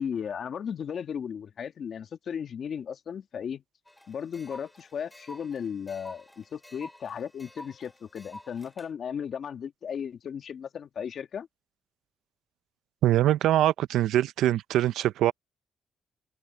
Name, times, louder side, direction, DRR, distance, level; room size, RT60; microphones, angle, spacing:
voice 1, 0.0-3.6 4.1-11.5, left 7 dB, 60° left, 2.1 m, -35 dB
sound 1, 3.9-8.9, left 1 dB, 10° left, 5.7 m, -49 dB
voice 2, 13.0-15.3, right 13 dB, 85° right, 0.5 m, -23 dB
cardioid pair, 70°, 0 cm